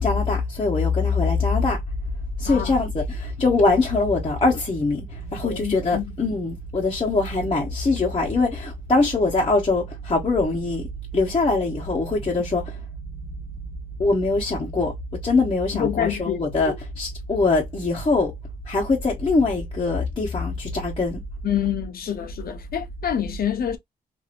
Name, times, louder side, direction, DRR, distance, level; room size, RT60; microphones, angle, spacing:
voice 1, 0.0-1.8 2.4-10.9 11.1-12.8 14.0-14.9 15.2-18.3 18.7-21.2, left 3 dB, 35° left, 1.0 m, -22 dB
voice 2, 5.4-6.1 15.7-16.4 21.4-23.8, left 10 dB, 65° left, 0.7 m, -27 dB
2.9 x 2.7 x 2.5 m
cardioid pair, 80°, 17 cm